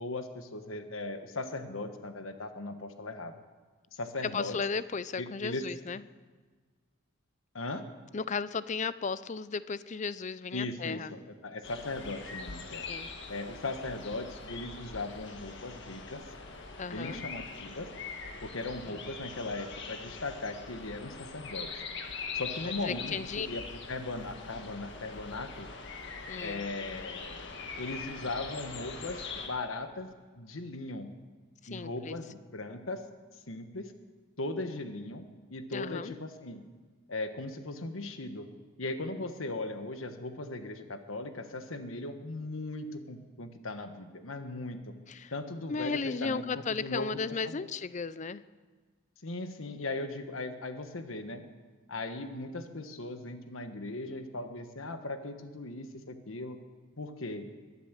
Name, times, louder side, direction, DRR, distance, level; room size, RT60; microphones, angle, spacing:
voice 1, 0.0-3.3 3.9-4.6 5.2-5.6 7.5-7.9 10.5-12.9 13.3-16.3 16.9-17.9 18.4-21.8 22.3-23.6 23.9-25.7 26.4-27.4 27.8-30.1 30.3-31.1 31.7-33.0 33.5-33.9 34.4-36.7 37.1-38.5 38.8-44.9 45.3-47.2 47.5-47.7 49.2-51.4 51.9-56.6 57.0-57.5, left 2 dB, 75° left, 8 dB, 1.3 m, -38 dB
voice 2, 4.2-6.0 8.1-11.1 12.9-13.1 16.8-17.2 18.9-19.0 22.7-23.5 26.3-26.6 31.6-32.2 35.7-36.1 45.1-45.3 45.7-48.4, left 5 dB, 35° left, 16 dB, 0.5 m, -35 dB
sound 1, 11.6-29.5, left 4 dB, 60° left, 1.7 m, -42 dB
22.5 x 8.4 x 7.4 m, 1.4 s
head